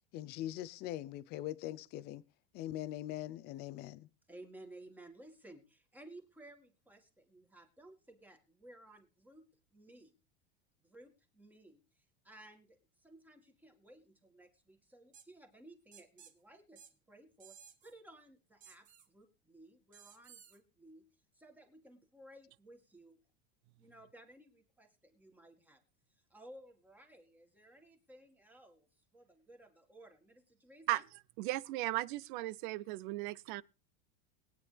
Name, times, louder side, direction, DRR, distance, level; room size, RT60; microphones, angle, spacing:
voice 1, 0.1-2.2 2.5-4.1, left 13 dB, 35° left, 0.6 m, -42 dB
voice 2, 4.3-10.1 10.8-17.6 17.8-21.1 21.3-23.2 23.8-25.8 26.1-31.0, right 1 dB, 5° right, 1.9 m, -57 dB
sound 1, 15.1-15.3 15.9-16.3 16.8-16.9 17.4-17.9 18.6-19.1 19.9-20.6, right 8 dB, 25° right, 1.3 m, -57 dB
voice 3, 31.4-33.6, right 18 dB, 55° right, 0.6 m, -36 dB
21.0 x 9.1 x 3.4 m
supercardioid pair, 155°, 29 cm